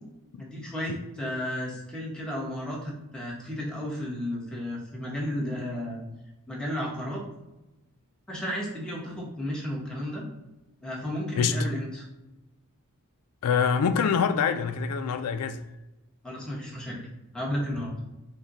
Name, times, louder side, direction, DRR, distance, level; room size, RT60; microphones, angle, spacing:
voice 1, 0.4-6.0 6.5-7.2 8.3-10.3 10.8-12.0 16.2-17.1 17.3-17.9, left 1 dB, 5° left, 1.0 m, -33 dB
voice 2, 11.4-11.7 13.4-15.6, left 6 dB, 90° left, 0.4 m, -25 dB
6.1 x 2.2 x 4.0 m
head